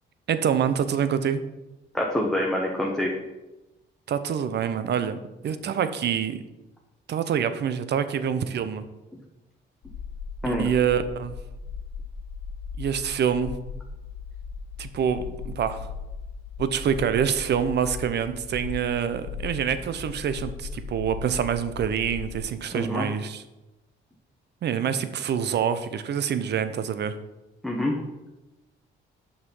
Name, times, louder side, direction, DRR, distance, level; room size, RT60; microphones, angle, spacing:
voice 1, 0.3-1.4 4.1-6.4 7.1-8.9 10.4-11.4 12.8-13.6 14.8-15.9 16.6-23.4 24.6-27.1, right 8 dB, 60° right, 11 dB, 0.7 m, -26 dB
voice 2, 1.9-3.1 10.4-10.7 22.7-23.0 27.6-27.9, left 1 dB, ahead, -3 dB, 1.2 m, -26 dB
sound 1, 9.8-22.4, left 5 dB, 70° left, 1.1 m, -38 dB
6.8 x 5.6 x 5.4 m, 1.0 s
cardioid pair, 90°, 20 cm